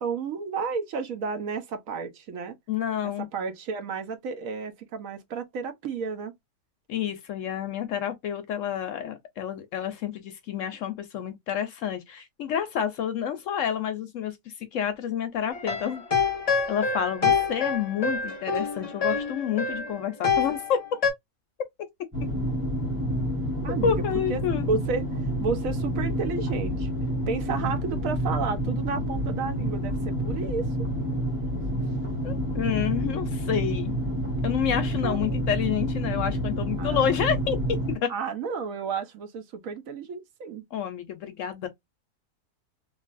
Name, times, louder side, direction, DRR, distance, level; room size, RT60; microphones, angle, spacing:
voice 1, 0.0-2.5 3.3-6.3 23.6-23.9 24.3-24.4 24.7-25.0 25.4-26.9 27.3-30.7 35.0-35.2 36.8-37.0 38.1-40.6, right 5 dB, 70° right, 1.0 m, -31 dB
voice 2, 2.7-3.3 6.9-16.0 16.7-20.8 23.8-24.7 32.2-34.0 34.4-38.1 40.7-41.7, left 8 dB, 65° left, 0.8 m, -29 dB
sound 1, 15.5-21.1, left 5 dB, 30° left, 0.7 m, -26 dB
sound 2, 22.1-38.0, equal, 10° right, 1.2 m, -29 dB
3.2 x 2.5 x 2.4 m
omnidirectional pair, 1.6 m